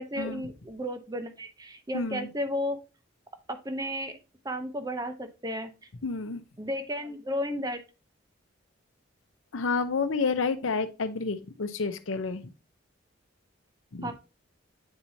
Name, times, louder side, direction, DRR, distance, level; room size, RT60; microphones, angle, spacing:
voice 1, 0.0-2.8 3.5-4.1 4.4-5.7 6.6-7.8 14.0-14.1, equal, 20° right, 8 dB, 0.7 m, -33 dB
voice 2, 1.9-2.3 6.0-6.4 9.5-12.4 13.9-14.1, left 4 dB, 80° left, 10 dB, 0.7 m, -29 dB
8.7 x 4.5 x 2.7 m, 0.29 s
head